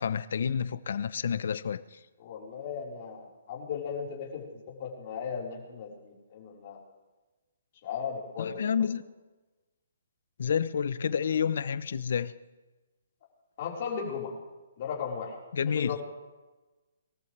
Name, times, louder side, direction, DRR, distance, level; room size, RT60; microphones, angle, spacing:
voice 1, 0.0-1.8 8.4-9.0 10.4-12.3 15.5-16.0, left 7 dB, 60° left, 15 dB, 0.7 m, -29 dB
voice 2, 2.2-6.8 7.8-8.6 13.6-14.3 14.8-15.4 15.7-16.0, left 6 dB, 35° left, -3 dB, 4.4 m, -36 dB
23.0 x 14.0 x 3.4 m, 1.2 s
hypercardioid pair, 165°, 0 cm